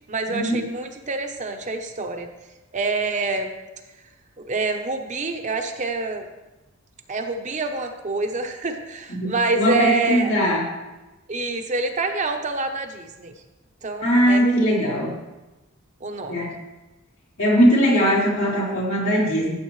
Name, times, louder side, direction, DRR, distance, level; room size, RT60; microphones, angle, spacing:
voice 1, 0.1-2.3 2.7-3.5 4.5-6.3 7.1-10.3 11.3-13.3 13.8-14.5 16.0-16.5, right 3 dB, 35° right, 5 dB, 0.8 m, -26 dB
voice 2, 9.1-10.6 14.0-15.2 16.3-16.5 17.4-19.5, equal, 85° left, -5 dB, 3.8 m, -20 dB
14.0 x 7.7 x 3.2 m, 1.1 s
head